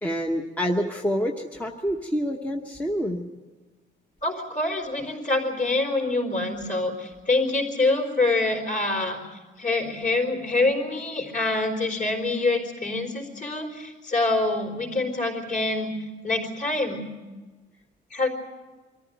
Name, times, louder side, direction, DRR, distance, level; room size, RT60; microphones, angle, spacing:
voice 1, 0.0-3.3, equal, 10° left, 2 dB, 1.0 m, -27 dB
voice 2, 4.2-15.9 16.2-17.1 18.1-18.3, left 2 dB, 45° left, 2 dB, 4.1 m, -25 dB
23.5 x 14.0 x 9.2 m, 1.3 s
cardioid pair, 160°, 19 cm